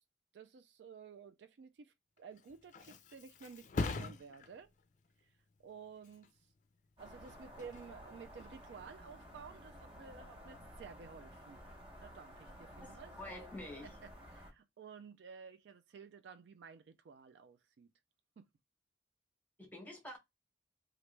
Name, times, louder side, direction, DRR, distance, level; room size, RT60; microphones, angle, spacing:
voice 1, 0.3-4.7 5.6-6.3 7.0-11.6 12.0-13.1 13.8-17.9 18.4-18.5, right 6 dB, 70° right, 0.4 m, -53 dB
Thump thud, 2.2-9.6 10.1-10.5, left 3 dB, 45° left, 0.4 m, -45 dB
sound 1, 7.0-14.5, equal, 30° right, 0.9 m, -53 dB
voice 2, 12.8-13.9 19.6-20.2, left 1 dB, 10° left, 1.0 m, -48 dB
3.0 x 2.5 x 3.2 m
head